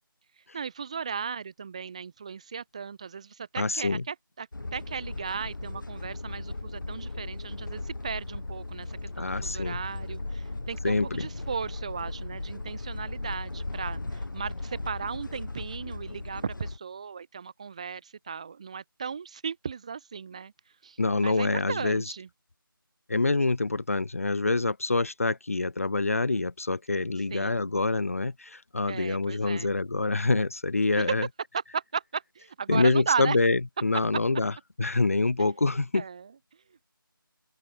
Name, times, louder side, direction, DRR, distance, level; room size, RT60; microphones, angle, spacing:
voice 1, 0.5-20.5 20.8-22.3 27.3-27.7 28.9-29.7 31.0-31.1 31.5-33.4 35.9-36.8, right 6 dB, 15° right, 2.0 m, -36 dB
voice 2, 3.6-4.0 9.2-9.8 10.8-11.3 21.0-22.0 23.1-31.3 32.7-34.5 34.8-36.0, left 3 dB, 40° left, 1.1 m, -26 dB
sound 1, 4.5-16.8, left 2 dB, 60° left, 3.5 m, -37 dB
open air
figure-of-eight pair, 175°, 12 cm